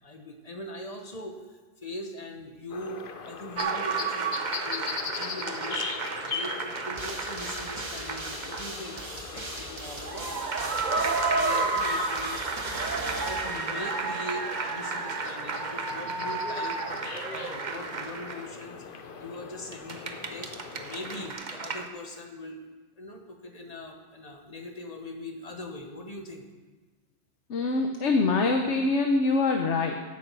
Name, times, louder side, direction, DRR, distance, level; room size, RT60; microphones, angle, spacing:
voice 1, 0.0-5.9 6.2-12.4 12.9-16.8 17.3-22.6 23.0-26.4, left 1 dB, 35° left, 3 dB, 1.4 m, -41 dB
sound 1, 2.7-21.3, left 5 dB, 55° left, 0.9 m, -41 dB
sound 2, 3.6-8.7 9.0-9.1 10.0-18.6 19.7-21.9, right 4 dB, 45° right, 0.9 m, -31 dB
sound 3, 7.0-14.2, right 1 dB, 25° right, 1.3 m, -40 dB
voice 2, 27.5-30.0, left 3 dB, 90° left, 3 dB, 1.2 m, -24 dB
16.0 x 8.8 x 4.6 m, 1.3 s
omnidirectional pair, 1.2 m